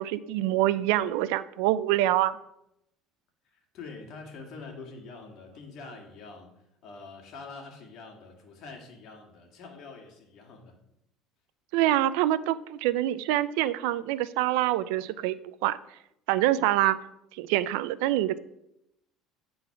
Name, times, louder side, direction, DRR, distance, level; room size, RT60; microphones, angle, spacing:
voice 1, 0.0-2.4 11.7-15.4 15.6-15.8 16.3-17.0 17.4-18.4, right 14 dB, 85° right, 16 dB, 0.4 m, -25 dB
voice 2, 3.5-6.5 6.8-10.7, left 4 dB, 55° left, 2 dB, 1.8 m, -45 dB
8.2 x 3.9 x 5.6 m, 0.82 s
cardioid pair, 125°, 0 cm